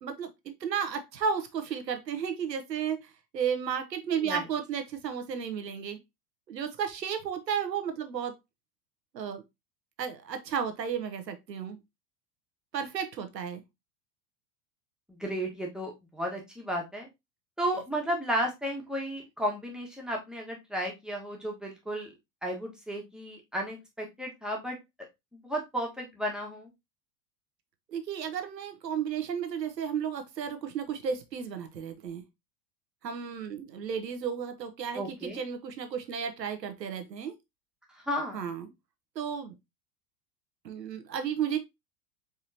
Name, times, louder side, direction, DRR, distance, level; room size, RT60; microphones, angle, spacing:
voice 1, 0.0-6.0 6.5-8.3 9.1-9.4 10.0-11.8 12.7-13.6 27.9-32.2 33.0-37.3 38.3-38.7 39.1-39.5 40.6-41.6, right 7 dB, 85° right, 1.0 m, -33 dB
voice 2, 15.1-17.1 17.6-22.1 22.4-24.8 25.3-26.7 34.9-35.4 37.9-38.4, equal, ahead, 1.5 m, -33 dB
4.7 x 3.6 x 2.8 m
hypercardioid pair, 90°, 49 cm